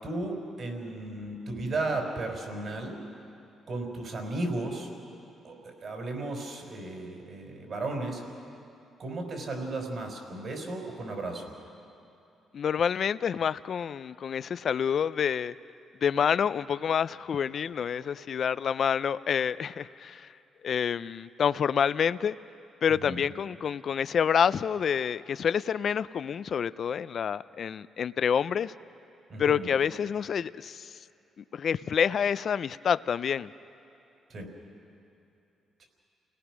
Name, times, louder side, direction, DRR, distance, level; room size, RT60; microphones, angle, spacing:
voice 1, 0.0-3.0 3.7-4.9 5.4-8.2 9.0-11.5 23.0-23.2 29.3-29.7 34.3-34.5 35.8-35.9, right 2 dB, 50° right, 2 dB, 4.9 m, -34 dB
voice 2, 12.5-15.5 16.0-20.3 20.6-22.4 22.8-28.7 29.4-31.0 31.4-33.5, left 7 dB, 55° left, 16 dB, 0.4 m, -28 dB
29.5 x 18.0 x 6.2 m, 2.7 s
cardioid pair, 90°, 0 cm